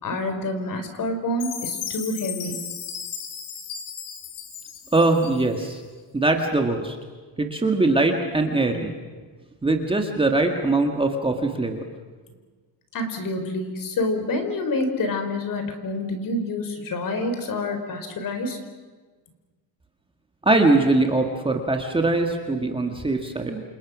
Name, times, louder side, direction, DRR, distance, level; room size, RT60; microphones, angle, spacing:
voice 1, 0.0-2.7 12.9-18.6, left 2 dB, 45° left, 7 dB, 4.4 m, -27 dB
Chime, 1.4-5.6, left 8 dB, 90° left, 4.2 m, -35 dB
voice 2, 4.9-5.8 6.1-7.0 7.4-8.9 9.6-11.8 20.4-23.6, right 2 dB, 10° right, 3 dB, 1.9 m, -22 dB
28.5 x 28.0 x 6.2 m, 1.4 s
cardioid pair, 160°, 46 cm